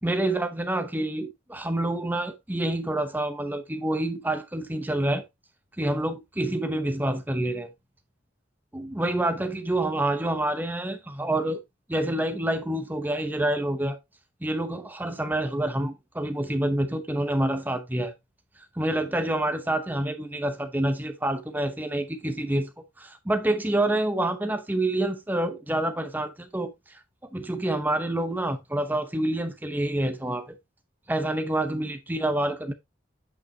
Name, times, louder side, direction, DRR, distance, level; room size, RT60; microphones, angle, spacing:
voice 1, 0.0-5.2 5.8-7.7 8.7-11.6 11.9-14.0 14.4-18.1 18.7-22.7 23.0-27.0 27.3-30.5 31.1-32.7, right 1 dB, 10° right, 0.8 m, -27 dB
8.8 x 5.6 x 2.8 m
head